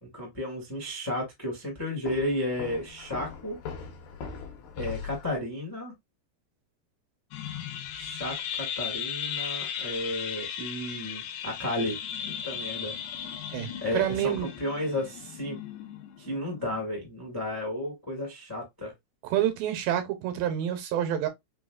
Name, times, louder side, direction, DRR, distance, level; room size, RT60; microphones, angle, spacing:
voice 1, 0.0-3.6 4.7-5.9 8.0-12.0 12.4-13.0 13.8-14.3 14.6-15.6 16.2-18.9, left 1 dB, 20° left, 0.5 m, -33 dB
Walk footsteps, 2.1-5.4, left 6 dB, 70° left, 2.2 m, -40 dB
sound 1, 7.3-17.0, left 8 dB, 85° left, 2.3 m, -37 dB
voice 2, 13.5-14.5 19.2-21.3, right 11 dB, 85° right, 2.5 m, -28 dB
5.5 x 2.3 x 2.3 m
omnidirectional pair, 4.0 m